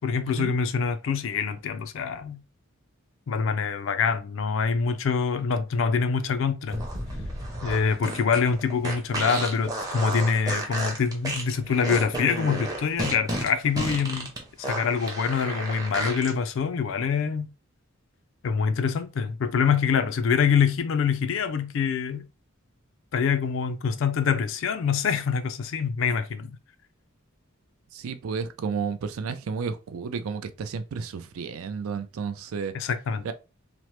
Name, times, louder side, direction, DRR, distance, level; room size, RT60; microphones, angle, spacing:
voice 1, 0.0-2.4 3.3-6.8 7.6-14.3 14.6-17.5 18.4-22.2 23.1-26.6 32.7-33.3, left 6 dB, 60° left, 0.3 m, -25 dB
sound 1, 6.7-16.3, right 1 dB, 15° right, 0.6 m, -32 dB
voice 2, 27.9-32.7 33.2-33.3, right 5 dB, 75° right, 0.4 m, -32 dB
3.0 x 2.0 x 2.9 m
head